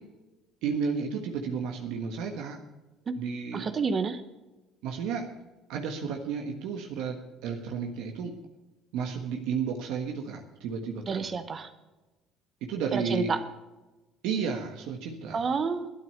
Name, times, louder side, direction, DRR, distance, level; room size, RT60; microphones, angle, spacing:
voice 1, 0.6-2.6 3.1-3.7 4.8-5.3 5.7-8.3 8.9-11.3 12.7-13.3 14.2-15.4, right 6 dB, 75° right, 3 dB, 1.4 m, -32 dB
voice 2, 3.5-4.2 11.1-11.7 12.9-13.4 15.3-15.9, right 5 dB, 35° right, 9 dB, 1.1 m, -29 dB
12.0 x 9.1 x 6.6 m, 1.1 s
supercardioid pair, 95°, 0 cm